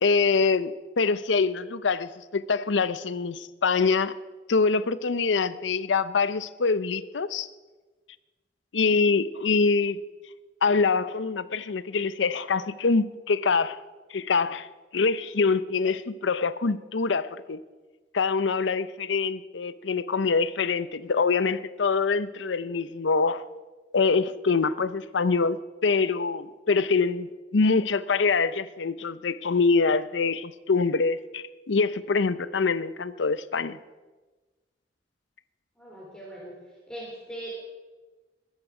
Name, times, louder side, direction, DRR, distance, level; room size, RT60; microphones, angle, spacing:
voice 1, 0.0-4.1 4.5-7.5 8.7-10.0 10.6-13.8 14.1-14.7 14.9-17.6 18.1-23.4 23.9-33.8, left 4 dB, 85° left, 0.6 m, -25 dB
voice 2, 35.8-36.5 36.9-37.5, right 1 dB, 5° left, 3.4 m, -40 dB
21.5 x 10.5 x 4.9 m
head